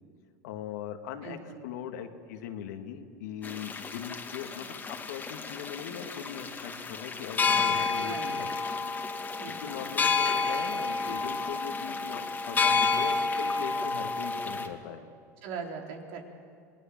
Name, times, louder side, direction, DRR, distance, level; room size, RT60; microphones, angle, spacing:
voice 1, 0.4-1.4 1.6-8.5 9.2-9.3 9.6-15.0, left 9 dB, 75° left, 6 dB, 2.1 m, -40 dB
voice 2, 1.2-1.6 7.5-8.3 9.4-9.7 15.4-16.2, right 5 dB, 65° right, 1 dB, 4.1 m, -41 dB
sound 1, 3.4-14.7, left 4 dB, 20° left, 2.2 m, -30 dB
27.0 x 19.5 x 7.5 m, 2.4 s
supercardioid pair, 105°, 9 cm